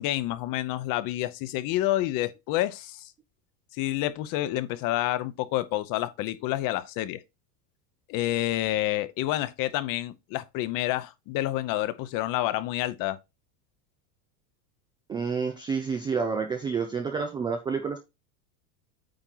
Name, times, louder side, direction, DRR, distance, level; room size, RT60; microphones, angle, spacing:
voice 1, 0.0-3.1 3.7-7.2 8.1-13.2, left 15 dB, 45° left, 0.9 m, -28 dB
voice 2, 15.1-18.0, right 5 dB, 10° right, 0.3 m, -29 dB
8.9 x 4.4 x 4.0 m
supercardioid pair, 145°, 48 cm